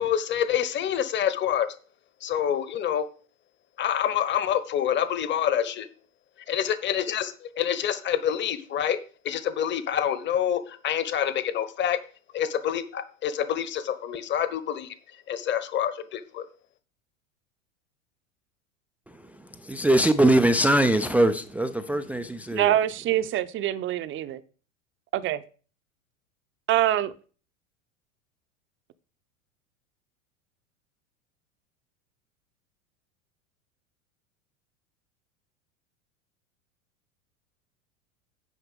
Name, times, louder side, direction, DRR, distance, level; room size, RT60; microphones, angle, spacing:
voice 1, 0.0-1.7 2.2-3.0 3.8-5.9 6.5-9.0 9.2-12.0 12.3-14.9 15.3-16.5, left 9 dB, 25° left, 1.0 m, -27 dB
voice 2, 19.7-22.7, right 1 dB, 5° right, 0.3 m, -21 dB
voice 3, 22.5-24.4 25.1-25.4 26.7-27.1, right 12 dB, 30° right, 0.7 m, -25 dB
10.0 x 4.2 x 6.8 m
figure-of-eight pair, 85°, 41 cm